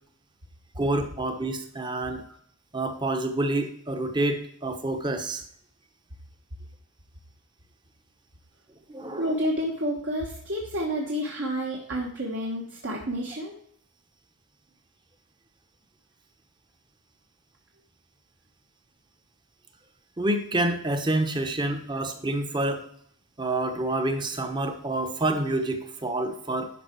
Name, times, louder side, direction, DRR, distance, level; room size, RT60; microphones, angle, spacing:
voice 1, 0.8-2.2 2.7-5.4 8.9-9.3 20.2-22.9 23.4-26.7, right 2 dB, 20° right, 6 dB, 1.0 m, -28 dB
voice 2, 9.2-13.6, equal, 55° right, -2 dB, 1.3 m, -30 dB
11.5 x 5.3 x 4.6 m, 0.65 s
head